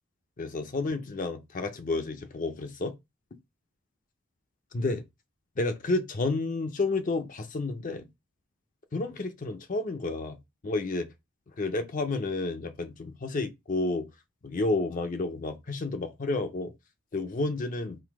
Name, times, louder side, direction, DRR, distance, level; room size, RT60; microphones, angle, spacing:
voice 1, 0.4-2.9 4.7-5.0 5.6-8.1 8.9-10.4 10.6-11.1 11.6-14.1 14.4-16.7 17.1-18.0, left 3 dB, 35° left, 0.5 m, -30 dB
3.8 x 2.6 x 4.7 m
head